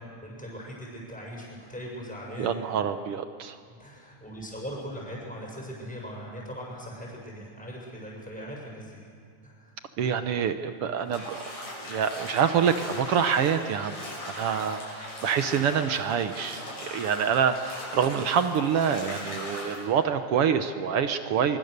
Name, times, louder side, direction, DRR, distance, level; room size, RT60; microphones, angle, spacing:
voice 1, 0.0-2.5 3.7-9.0 9.4-9.8, equal, ahead, -3 dB, 6.6 m, -40 dB
voice 2, 2.4-3.6 10.0-11.4 11.8-14.0 14.2-21.6, right 7 dB, 65° right, 9 dB, 1.5 m, -26 dB
Bathtub (filling or washing), 11.1-19.8, left 1 dB, 65° left, 8.0 m, -39 dB
25.0 x 23.0 x 6.7 m, 2.5 s
omnidirectional pair, 3.5 m